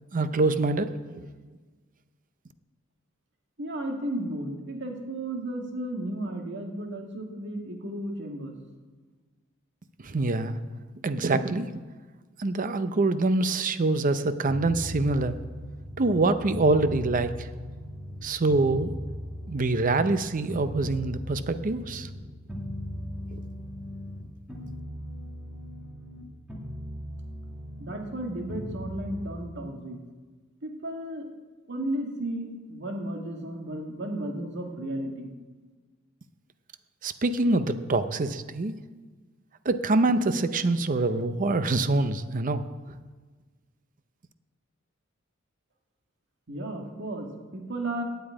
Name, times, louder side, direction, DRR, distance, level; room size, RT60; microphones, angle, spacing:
voice 1, 0.1-0.9 10.0-10.6 11.0-11.8 12.4-15.4 16.0-17.5 18.2-18.9 19.5-22.1 23.3-23.4 37.0-38.8 39.6-42.6, right 2 dB, 40° right, 11 dB, 0.6 m, -25 dB
voice 2, 3.6-8.6 27.8-30.0 30.6-31.3 31.7-35.3 46.5-48.0, right 1 dB, 60° right, 2 dB, 1.8 m, -34 dB
sound 1, 14.5-18.2 18.5-24.2 24.5-26.2 26.5-29.5, equal, 5° right, 2.2 m, -38 dB
9.4 x 8.6 x 8.9 m, 1.4 s
head